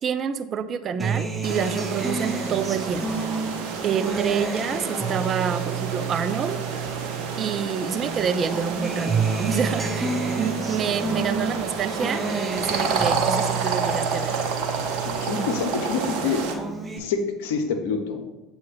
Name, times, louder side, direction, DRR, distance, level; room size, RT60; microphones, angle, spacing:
voice 1, 0.0-3.1 3.8-6.6 7.4-14.4, right 7 dB, 40° right, 12 dB, 0.5 m, -27 dB
Acoustic guitar, 1.0-7.6 8.0-15.6 16.0-17.0, right 4 dB, 15° right, 0.8 m, -30 dB
sound 1, 1.4-16.6, right 5 dB, 60° right, 0.8 m, -30 dB
voice 2, 14.8-16.5 17.0-18.2, left 5 dB, 70° left, 6 dB, 0.8 m, -27 dB
7.5 x 2.9 x 5.8 m, 1.1 s
hypercardioid pair, 70°, 0 cm